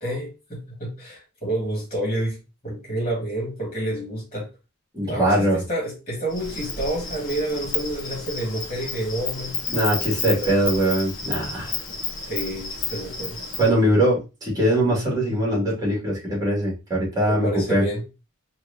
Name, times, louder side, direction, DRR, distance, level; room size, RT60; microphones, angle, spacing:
voice 1, 0.0-4.5 5.0-9.5 10.4-10.6 12.3-13.4 17.3-18.0, right 1 dB, 30° left, -4 dB, 2.0 m, -29 dB
voice 2, 4.9-5.6 9.7-11.8 13.6-17.9, right 1 dB, 15° right, -4 dB, 2.1 m, -22 dB
Insect, 6.3-13.7, left 4 dB, 55° left, 1.0 m, -31 dB
4.5 x 2.7 x 2.7 m, 0.29 s
head